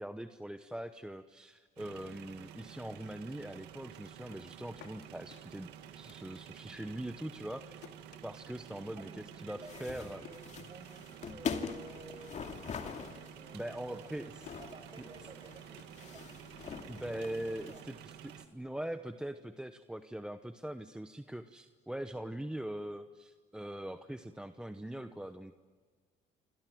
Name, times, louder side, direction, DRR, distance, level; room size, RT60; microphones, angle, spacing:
voice 1, 0.0-5.7 6.0-7.8 8.2-10.2 13.5-14.3 16.9-25.5, right 1 dB, 5° right, 9 dB, 0.9 m, -42 dB
sound 1, 1.8-18.5, right 10 dB, 90° right, 2.0 m, -51 dB
sound 2, 4.0-6.8 7.1-11.2 11.5-12.1 12.4-18.7, left 9 dB, 90° left, 2.4 m, -60 dB
voice 2, 9.0-14.1 14.6-16.2 16.7-17.8, right 3 dB, 30° right, 7 dB, 6.3 m, -54 dB
sound 3, 9.6-17.8, left 6 dB, 45° left, 2.5 m, -43 dB
28.5 x 26.0 x 7.7 m, 1.5 s
cardioid pair, 110°, 17 cm